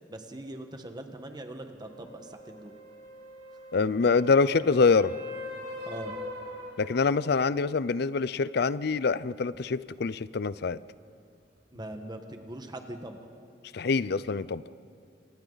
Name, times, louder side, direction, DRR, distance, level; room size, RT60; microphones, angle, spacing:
voice 1, 0.1-2.7 5.8-6.2 11.7-13.2, right 1 dB, 25° right, 5 dB, 1.4 m, -41 dB
sound 1, 1.8-7.5 11.6-11.7, left 1 dB, 65° right, 6.6 m, -42 dB
voice 2, 3.7-5.1 6.8-10.8 13.7-14.6, left 4 dB, 65° left, 17 dB, 0.5 m, -25 dB
30.0 x 27.0 x 4.0 m, 2.5 s
head